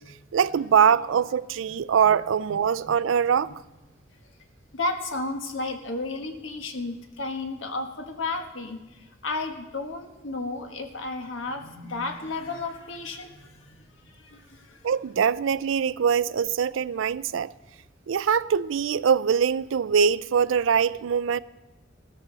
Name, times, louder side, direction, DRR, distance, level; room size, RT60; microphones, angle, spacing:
voice 1, 0.3-3.5 14.8-17.5 18.1-21.4, right 7 dB, 90° right, 0.4 m, -23 dB
voice 2, 4.7-14.8, left 3 dB, 90° left, 1.5 m, -33 dB
17.0 x 13.5 x 4.0 m
head